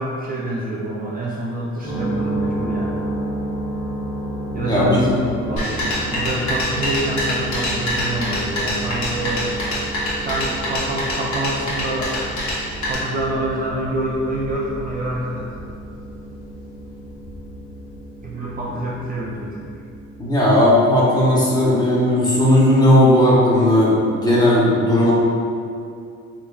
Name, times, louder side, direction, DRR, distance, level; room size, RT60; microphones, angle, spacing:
voice 1, 0.0-3.0 4.5-9.6 10.2-12.1 12.9-15.5 18.2-19.7, right 1 dB, 30° right, -5 dB, 0.4 m, -26 dB
sound 1, 1.8-20.2, right 1 dB, 45° left, 1.0 m, -31 dB
voice 2, 4.6-5.0 20.2-25.1, left 1 dB, 15° left, -7 dB, 0.9 m, -16 dB
sound 2, 5.6-12.9, left 1 dB, 70° left, 1.0 m, -25 dB
3.3 x 3.2 x 2.3 m, 2.4 s
cardioid pair, 90°, 30 cm